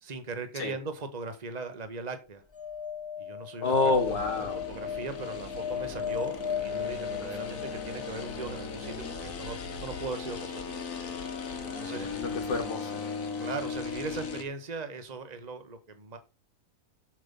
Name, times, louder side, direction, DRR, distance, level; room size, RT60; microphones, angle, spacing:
voice 1, 0.0-2.4 3.2-3.7 4.1-4.2 4.7-10.8 11.8-12.2 13.4-16.2, right 4 dB, 25° right, 1.4 m, -39 dB
sound 1, 2.5-8.7 11.0-11.1 11.2-11.3, left 8 dB, 25° left, 0.6 m, -36 dB
voice 2, 3.6-4.7 7.2-7.3 11.9-13.0, left 3 dB, 75° left, 2.4 m, -29 dB
sound 2, 3.6-14.4, left 5 dB, 50° left, 1.8 m, -38 dB
8.3 x 7.2 x 5.4 m
omnidirectional pair, 2.0 m